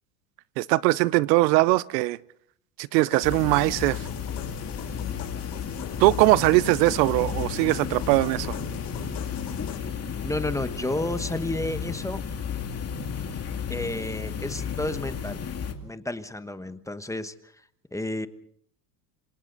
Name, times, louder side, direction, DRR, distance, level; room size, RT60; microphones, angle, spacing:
voice 1, 0.6-2.2 2.8-4.1 6.0-8.6, right 20 dB, 75° right, 0.8 m, -21 dB
sound 1, 3.1-9.8, left 7 dB, 60° left, 7.5 m, -43 dB
sound 2, 3.2-15.7, left 7 dB, 30° left, 2.5 m, -33 dB
voice 2, 10.2-12.2 13.7-15.4 15.8-17.3 17.9-18.3, left 1 dB, 5° left, 1.2 m, -31 dB
27.5 x 26.0 x 4.0 m
supercardioid pair, 95°, 50 cm